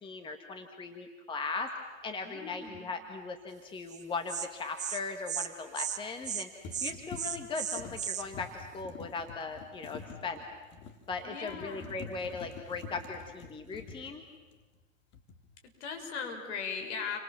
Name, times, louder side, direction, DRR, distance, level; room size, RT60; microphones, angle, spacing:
voice 1, 0.0-1.7 2.0-10.4 11.1-14.2, left 4 dB, 10° left, 5 dB, 1.7 m, -39 dB
voice 2, 2.2-2.9 11.2-12.0 15.8-17.2, left 6 dB, 55° left, 4 dB, 6.5 m, -38 dB
sound 1, 2.7-2.8 6.0-6.3 6.6-14.8 15.1-15.6, left 5 dB, 25° left, 2.6 m, -48 dB
Insect, 3.9-4.0 4.3-4.5 4.8-5.0 5.3-5.5 5.7-6.0 6.2-6.5 6.7-8.2, right 9 dB, 20° right, 1.3 m, -35 dB
30.0 x 26.0 x 7.6 m, 1.3 s
hypercardioid pair, 130°, 40 cm